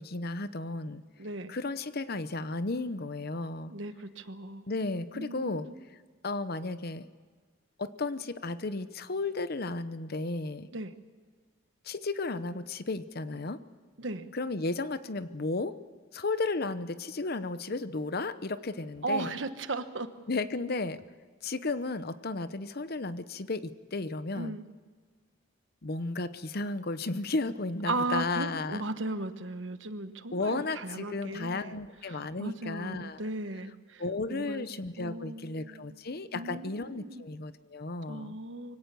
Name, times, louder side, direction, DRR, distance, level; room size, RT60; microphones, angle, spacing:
voice 1, 0.0-1.0 1.5-3.7 4.7-5.7 6.2-7.1 7.8-10.7 11.8-13.6 14.3-15.8 16.1-19.3 20.3-21.0 21.4-24.6 25.8-28.8 30.3-33.2 34.0-38.4, left 3 dB, 50° left, 13 dB, 0.9 m, -34 dB
voice 2, 1.2-1.5 3.7-4.6 5.1-5.7 10.7-10.9 14.0-14.3 19.0-20.1 24.3-24.7 27.9-31.8 32.1-34.0 34.3-34.7 35.0-36.0 36.3-37.2 38.1-38.8, right 2 dB, 65° right, 10 dB, 1.2 m, -36 dB
24.0 x 17.5 x 6.9 m, 1.5 s
head